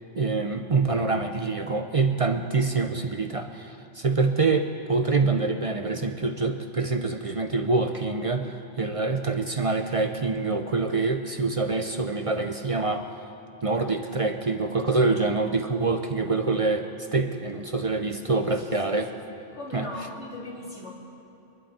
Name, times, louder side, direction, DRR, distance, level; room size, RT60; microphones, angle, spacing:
voice 1, 0.1-13.1 13.6-19.1 19.7-20.1, right 3 dB, 40° right, 6 dB, 0.6 m, -26 dB
voice 2, 19.5-20.9, left 2 dB, 90° left, -5 dB, 3.5 m, -38 dB
25.5 x 11.5 x 4.2 m, 2.9 s
omnidirectional pair, 1.1 m